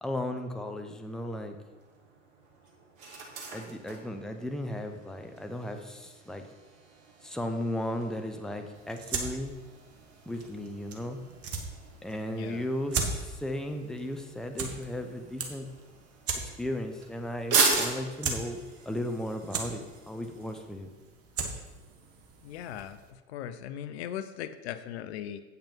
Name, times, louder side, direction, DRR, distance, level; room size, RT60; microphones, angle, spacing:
voice 1, 0.0-1.6 3.5-6.4 7.2-9.5 10.3-11.2 12.0-15.7 16.4-18.6 18.9-20.9, left 1 dB, ahead, 5 dB, 0.9 m, -35 dB
sound 1, 1.0-20.6, right 4 dB, 55° right, 2.2 m, -38 dB
sound 2, 8.7-23.1, right 4 dB, 40° right, 1.6 m, -39 dB
voice 2, 12.3-12.6 22.4-25.4, left 10 dB, 60° left, 11 dB, 0.7 m, -39 dB
8.7 x 5.8 x 5.5 m, 1.2 s
figure-of-eight pair, 80°, 37 cm